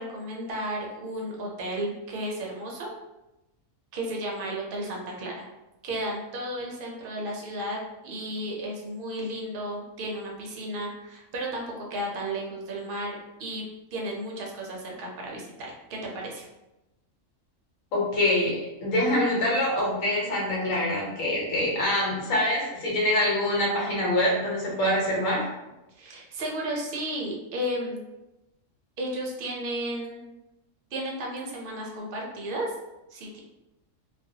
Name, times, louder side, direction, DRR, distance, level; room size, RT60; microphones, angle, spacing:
voice 1, 0.0-2.9 3.9-5.3 5.8-13.6 13.9-16.4 25.9-28.0 29.0-30.2 30.9-32.7 33.1-33.4, right 1 dB, 55° right, -1 dB, 0.6 m, -33 dB
voice 2, 17.9-25.4, left 1 dB, 80° left, -4 dB, 1.2 m, -25 dB
2.4 x 2.2 x 2.6 m, 0.97 s
omnidirectional pair, 1.4 m